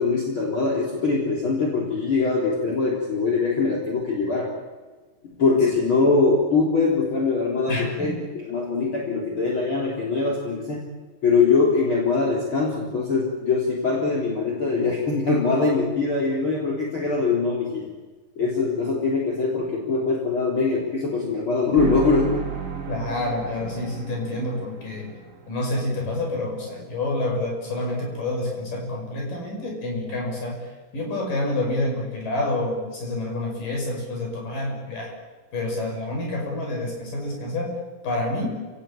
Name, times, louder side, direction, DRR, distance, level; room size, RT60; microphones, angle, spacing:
voice 1, 0.0-4.5 5.4-10.8 11.2-17.9 18.4-22.4, left 4 dB, 35° left, -2 dB, 4.1 m, -22 dB
voice 2, 7.7-8.2 22.9-25.1 25.5-30.6 30.9-35.1 35.5-37.7 38.0-38.5, left 2 dB, 70° left, 0 dB, 7.9 m, -28 dB
sound 1, 21.8-25.8, right 8 dB, 45° right, 3.2 m, -33 dB
27.5 x 18.5 x 8.8 m, 1.3 s
omnidirectional pair, 4.0 m